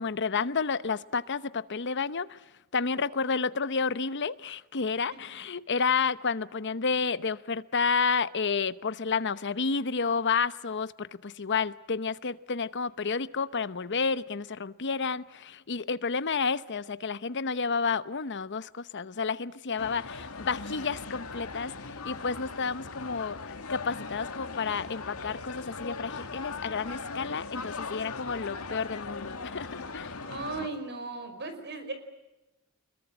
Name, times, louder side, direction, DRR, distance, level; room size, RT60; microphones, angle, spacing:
voice 1, 0.0-2.4 2.7-30.1, left 5 dB, 55° left, 0.9 m, -30 dB
sound 1, 19.8-30.7, left 4 dB, 85° left, 2.3 m, -39 dB
voice 2, 30.2-31.9, right 3 dB, 50° right, 5.2 m, -36 dB
25.5 x 22.5 x 8.9 m
head